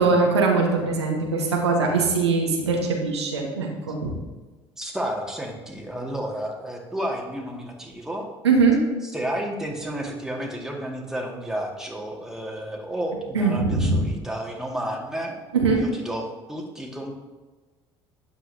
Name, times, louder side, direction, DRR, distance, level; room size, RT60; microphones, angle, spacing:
voice 1, 0.0-4.1 8.4-8.8 13.3-14.0 15.5-15.8, right 4 dB, 80° right, 0 dB, 1.5 m, -21 dB
voice 2, 4.8-8.3 9.0-15.4 15.8-17.1, right 1 dB, 5° right, -1 dB, 2.1 m, -31 dB
12.5 x 9.5 x 2.8 m, 1.3 s
figure-of-eight pair, 60°, 14 cm